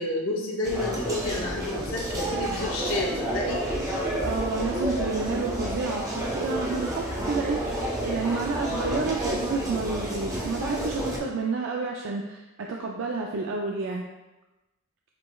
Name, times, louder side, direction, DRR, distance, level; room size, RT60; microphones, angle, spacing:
voice 1, 0.0-3.6, left 2 dB, 80° left, -2 dB, 0.7 m, -30 dB
sound 1, 0.6-11.2, right 1 dB, 15° right, 0.6 m, -30 dB
voice 2, 4.2-14.0, right 3 dB, 60° right, 0 dB, 0.4 m, -30 dB
7.5 x 3.1 x 2.3 m, 1.0 s
head